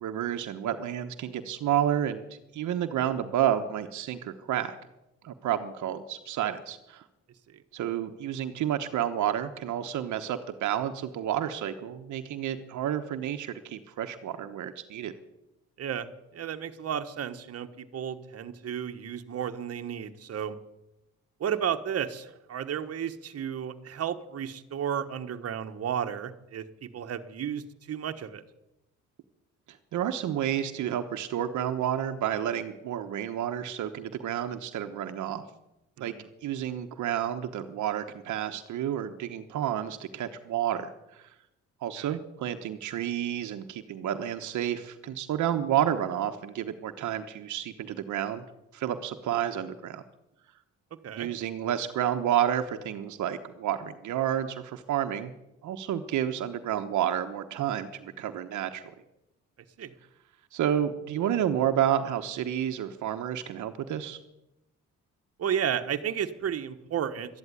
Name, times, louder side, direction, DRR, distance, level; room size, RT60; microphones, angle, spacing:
voice 1, 0.0-2.2 2.5-4.8 5.2-7.0 7.7-15.1 29.7-35.4 36.0-36.1 36.4-41.3 41.8-48.4 48.7-50.0 51.2-55.3 55.6-58.9 60.5-64.2, right 10 dB, 75° right, 7 dB, 1.1 m, -30 dB
voice 2, 15.8-20.6 21.4-28.4 36.0-36.3 41.9-42.2 51.0-51.3 59.8-59.9 65.4-67.4, right 8 dB, 55° right, 7 dB, 1.3 m, -33 dB
12.5 x 11.0 x 9.7 m, 0.91 s
cardioid pair, 90°, 30 cm